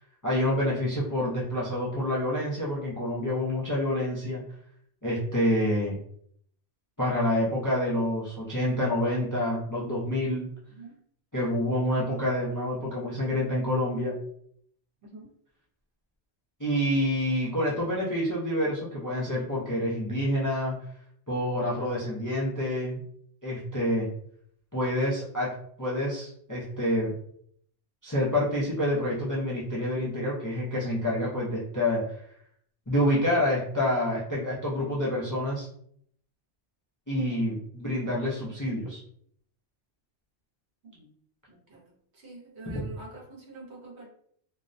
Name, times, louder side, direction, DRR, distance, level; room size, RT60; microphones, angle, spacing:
voice 1, 0.2-4.4 5.0-6.0 7.0-10.5 11.3-14.1 16.6-20.7 21.3-23.0 23.4-24.1 24.7-27.1 28.0-32.0 32.9-35.7 37.1-39.0 42.7-42.8, left 1 dB, 30° left, -6 dB, 0.4 m, -27 dB
voice 2, 41.5-41.8 42.1-44.1, right 2 dB, 70° right, -1 dB, 1.0 m, -46 dB
2.5 x 2.1 x 2.5 m, 0.65 s
omnidirectional pair, 1.2 m